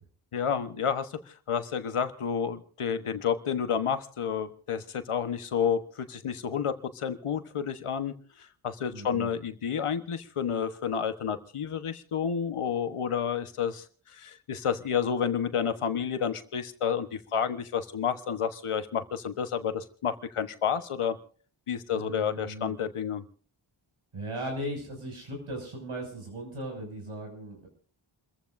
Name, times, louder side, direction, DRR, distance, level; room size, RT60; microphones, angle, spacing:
voice 1, 0.3-21.2 21.7-23.2, left 7 dB, 85° left, 9 dB, 1.3 m, -30 dB
voice 2, 8.9-9.3 21.9-22.7 24.1-27.7, right 1 dB, 80° right, 2 dB, 6.7 m, -37 dB
29.5 x 15.0 x 2.7 m, 0.43 s
wide cardioid pair, 60°, 50 cm